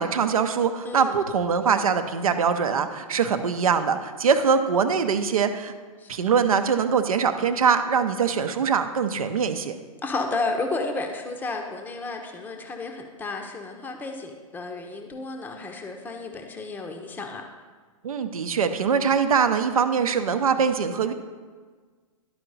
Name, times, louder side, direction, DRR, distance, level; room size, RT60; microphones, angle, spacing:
voice 1, 0.0-5.7 6.1-9.8 18.0-21.1, right 6 dB, 75° right, 8 dB, 0.7 m, -23 dB
voice 2, 0.8-1.2 6.0-6.1 10.0-17.4, left 3 dB, 10° left, 3 dB, 0.7 m, -32 dB
11.5 x 4.5 x 4.0 m, 1.5 s
hypercardioid pair, 115°, 18 cm